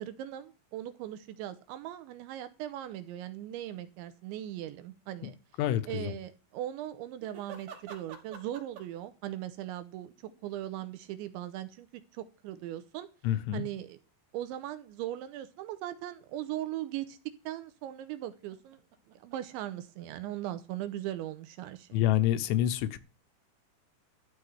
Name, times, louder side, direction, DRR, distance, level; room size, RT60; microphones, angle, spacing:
voice 1, 0.0-5.4 5.9-10.1 10.4-11.9 12.1-13.1 13.5-14.0 14.3-17.2 17.5-18.8 19.2-22.0, right 13 dB, 80° right, 3.0 m, -39 dB
sound 1, 2.9-3.0 7.2-9.1 10.1-11.2 11.9-12.0 12.9-13.0 17.8-20.2, right 7 dB, 60° right, 3.4 m, -49 dB
voice 2, 5.6-6.1 13.2-13.7 21.9-23.0, left 12 dB, 80° left, 3.3 m, -27 dB
13.0 x 5.8 x 7.9 m
omnidirectional pair, 5.6 m